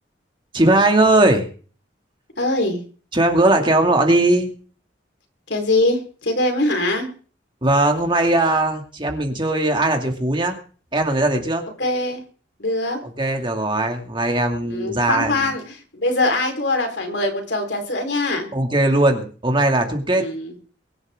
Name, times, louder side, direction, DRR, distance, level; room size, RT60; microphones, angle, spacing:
voice 1, 0.5-1.4 3.1-4.5 7.6-10.6 10.9-11.6 13.0-15.4 18.5-20.2, right 2 dB, 25° right, 3 dB, 2.5 m, -19 dB
voice 2, 2.4-2.8 5.5-7.1 11.8-12.2 12.6-13.0 14.7-18.5 20.2-20.5, left 2 dB, 65° left, 4 dB, 4.3 m, -22 dB
23.5 x 11.5 x 3.7 m, 0.40 s
head